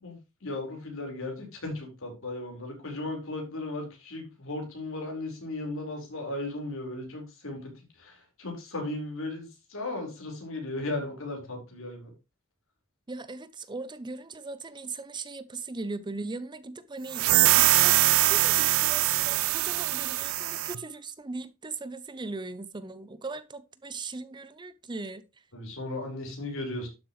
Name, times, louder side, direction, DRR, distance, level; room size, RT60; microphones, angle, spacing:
voice 1, 0.0-7.7 8.0-12.1 25.5-26.9, left 2 dB, 65° left, 4.5 m, -36 dB
voice 2, 13.1-25.2, right 3 dB, 20° right, 0.6 m, -39 dB
sound 1, 17.1-20.8, right 16 dB, 70° right, 0.5 m, -23 dB
12.0 x 7.3 x 3.1 m
head